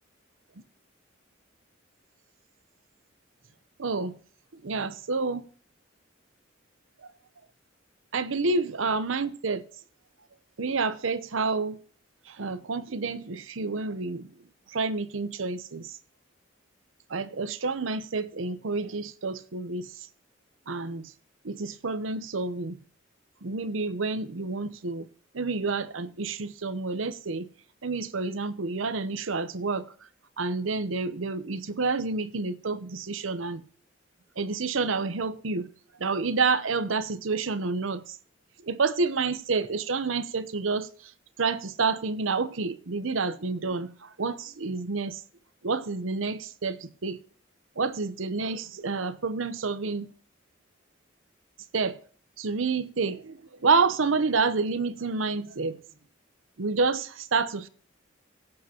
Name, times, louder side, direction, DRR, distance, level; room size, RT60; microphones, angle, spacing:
voice 1, 3.8-4.1 4.5-5.5 7.0-7.1 8.1-9.6 10.6-11.8 12.3-14.3 14.7-16.0 17.1-20.1 20.7-21.1 21.4-22.8 23.4-25.1 25.3-27.5 27.8-29.9 30.4-33.6 34.4-35.7 36.0-38.2 38.6-41.1 41.4-45.2 45.6-47.2 47.8-50.1 51.7-52.0 52.4-55.8 56.6-57.7, right 4 dB, 85° right, 0.8 m, -29 dB
17.5 x 7.6 x 2.9 m
head